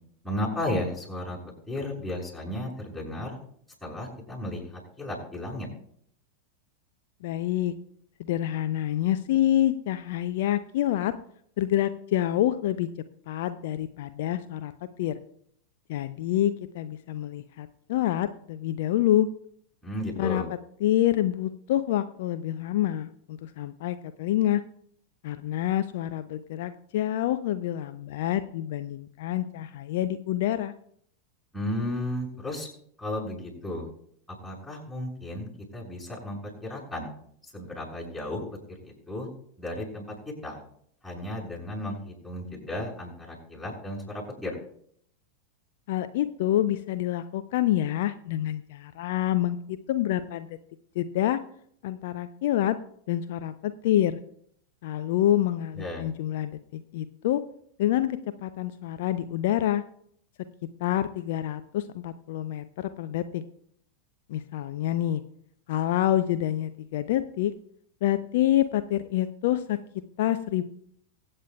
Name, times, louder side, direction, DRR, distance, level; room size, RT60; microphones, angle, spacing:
voice 1, 0.2-1.4 1.7-3.4 3.8-5.7 19.8-20.5 31.5-32.7 33.0-33.9 34.4-37.1 37.4-38.4 38.7-39.3 39.6-40.1 40.4-40.6 41.0-44.6 55.7-56.1, left 1 dB, ahead, -5 dB, 6.2 m, -34 dB
voice 2, 7.2-7.8 8.2-11.1 11.6-12.9 13.3-14.7 15.0-15.1 15.9-19.3 20.2-20.4 20.8-24.6 25.2-30.7 45.9-50.6 51.0-51.4 51.8-52.8 53.1-54.2 54.8-57.4 57.8-59.8 60.8-63.4 64.3-65.2 65.7-67.5 68.0-69.8 70.2-70.6, left 12 dB, 50° left, 11 dB, 0.5 m, -27 dB
23.5 x 8.8 x 2.3 m, 0.65 s
figure-of-eight pair, 90°, 0 cm